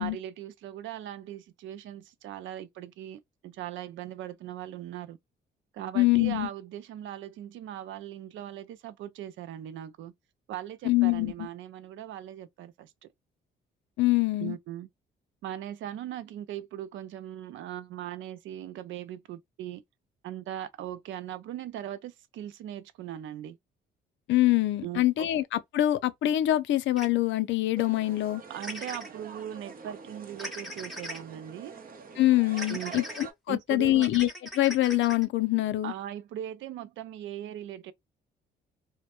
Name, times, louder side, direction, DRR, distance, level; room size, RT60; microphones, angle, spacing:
voice 1, 0.0-5.2 5.7-10.1 10.5-13.1 14.4-14.9 15.4-19.8 20.2-23.6 24.8-25.3 28.5-31.8 32.7-33.0 33.5-34.1 35.8-37.9, right 11 dB, 75° right, 0.4 m, -39 dB
voice 2, 5.9-6.5 10.8-11.5 14.0-14.6 24.3-28.4 32.2-34.3 34.6-35.9, left 16 dB, 70° left, 0.4 m, -25 dB
sound 1, 27.0-27.1 28.6-29.1 30.4-31.2 32.6-33.3 34.0-35.2, equal, ahead, 0.9 m, -39 dB
sound 2, 27.8-33.3, right 5 dB, 45° right, 0.7 m, -46 dB
2.1 x 2.1 x 2.8 m
cardioid pair, 90°, 20 cm